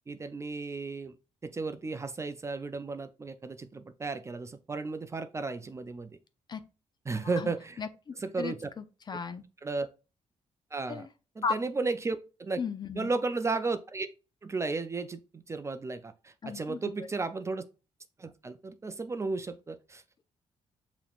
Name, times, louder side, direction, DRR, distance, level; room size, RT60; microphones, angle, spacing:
voice 1, 0.1-1.1 1.4-6.2 7.1-7.8 8.2-8.7 9.6-9.9 10.7-11.1 11.4-12.6 12.9-14.1 14.4-17.6 18.2-20.2, right 3 dB, 25° right, 0.4 m, -34 dB
voice 2, 7.8-9.4 10.9-11.1 11.4-11.6 12.6-13.1 16.4-16.8, left 5 dB, 35° left, 0.5 m, -35 dB
6.9 x 3.0 x 2.4 m
cardioid pair, 110°, 12 cm